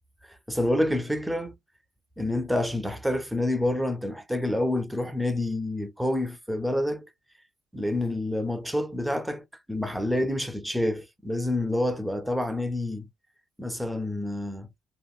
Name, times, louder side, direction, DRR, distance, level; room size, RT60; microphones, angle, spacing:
voice 1, 0.5-1.5 2.2-7.1 7.7-13.1 13.6-14.7, left 1 dB, 5° right, 0.6 m, -28 dB
2.9 x 2.4 x 2.2 m
hypercardioid pair, 60°, 0 cm